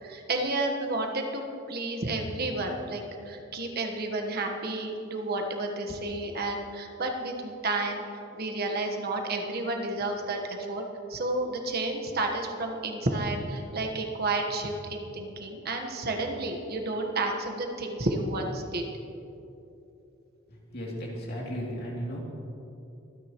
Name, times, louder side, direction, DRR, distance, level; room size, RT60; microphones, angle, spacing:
voice 1, 0.0-8.0 8.3-10.8 11.1-18.8, right 2 dB, 50° right, 2 dB, 1.3 m, -31 dB
voice 2, 20.7-22.2, equal, 50° left, -3 dB, 2.8 m, -35 dB
24.0 x 9.8 x 3.1 m, 2.8 s
head